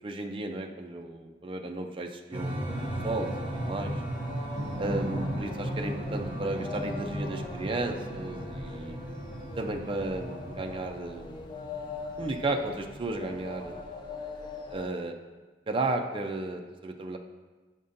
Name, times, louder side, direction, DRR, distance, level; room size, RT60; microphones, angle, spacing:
voice 1, 0.0-3.9 4.8-9.0 9.6-11.4 12.2-13.7 14.7-15.2 15.7-17.2, right 2 dB, 30° right, 3 dB, 0.4 m, -34 dB
sound 1, 2.3-10.8, right 1 dB, 10° right, 1.2 m, -36 dB
sound 2, 2.7-14.9, left 3 dB, 25° left, 0.7 m, -42 dB
sound 3, 4.5-13.9, right 1 dB, 70° right, 0.7 m, -42 dB
9.4 x 5.4 x 2.6 m, 1.3 s
head